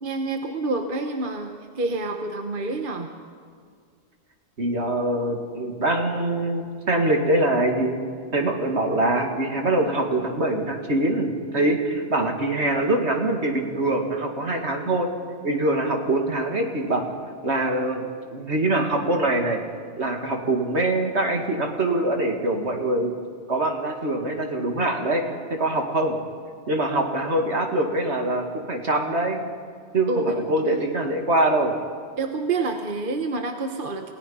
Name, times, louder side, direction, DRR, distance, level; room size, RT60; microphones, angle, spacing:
voice 1, 0.0-3.1 30.1-30.8 32.2-34.1, right 3 dB, 45° right, 4 dB, 1.3 m, -28 dB
voice 2, 4.6-8.0 8.3-15.1 15.4-17.0 17.4-18.0 18.3-19.6 20.0-23.1 23.5-25.2 25.6-26.2 26.7-29.4 29.9-31.7, right 2 dB, 65° right, 3 dB, 2.5 m, -23 dB
28.5 x 17.5 x 5.6 m, 2.1 s
omnidirectional pair, 1.2 m